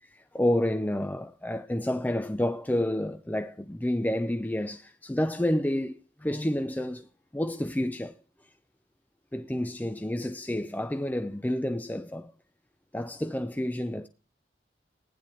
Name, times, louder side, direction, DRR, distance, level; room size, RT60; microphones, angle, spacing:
voice 1, 0.1-8.2 9.3-12.3 12.9-14.1, left 1 dB, 10° left, 0.5 m, -29 dB
15.5 x 10.0 x 3.1 m
head